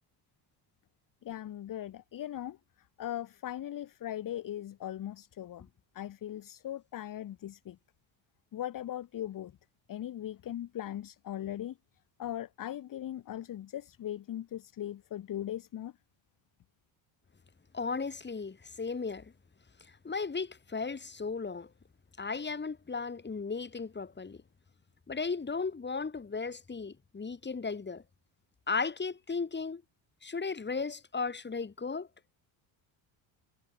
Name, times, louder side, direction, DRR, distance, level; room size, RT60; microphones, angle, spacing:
voice 1, 1.2-2.6 3.0-5.7 5.9-7.8 8.5-9.5 9.9-11.8 12.2-15.9, left 12 dB, 40° left, 1.2 m, -39 dB
voice 2, 17.7-19.3 20.0-21.7 22.2-24.4 25.1-28.0 28.7-29.8 30.2-32.1, left 4 dB, 20° left, 4.0 m, -35 dB
cardioid pair, 105°, 49 cm